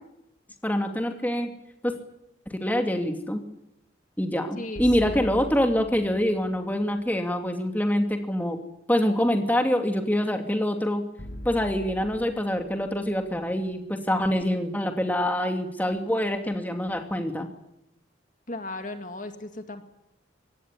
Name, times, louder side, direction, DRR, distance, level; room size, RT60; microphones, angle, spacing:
voice 1, 0.6-1.5 1.8-1.9 2.5-3.4 4.2-8.6 8.9-11.0 11.4-17.5, equal, 10° left, 5 dB, 2.7 m, -25 dB
voice 2, 4.6-5.3 18.5-19.9, left 2 dB, 40° left, 7 dB, 2.1 m, -37 dB
sound 1, 4.8-6.9 11.2-14.4, equal, 60° left, 6.8 m, -41 dB
25.0 x 20.0 x 9.7 m, 0.85 s
head